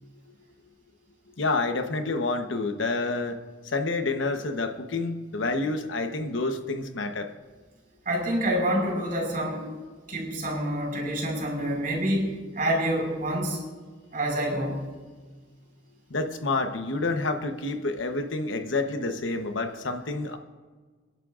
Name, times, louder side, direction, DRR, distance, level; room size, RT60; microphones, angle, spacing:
voice 1, 1.4-3.4 3.7-7.3 16.1-20.4, left 3 dB, 75° left, 7 dB, 1.1 m, -28 dB
voice 2, 8.1-9.7 10.1-13.6 14.1-14.9, right 1 dB, 45° right, 0 dB, 5.1 m, -27 dB
29.0 x 11.0 x 2.5 m, 1.5 s
head